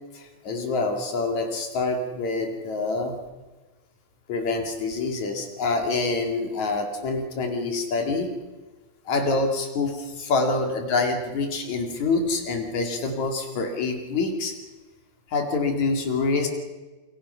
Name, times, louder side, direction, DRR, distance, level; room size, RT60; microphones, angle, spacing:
voice 1, 0.1-3.2 4.3-8.3 9.1-14.6 15.3-16.5, left 3 dB, 70° left, 3 dB, 3.8 m, -26 dB
27.5 x 24.0 x 5.7 m, 1.2 s
omnidirectional pair, 3.4 m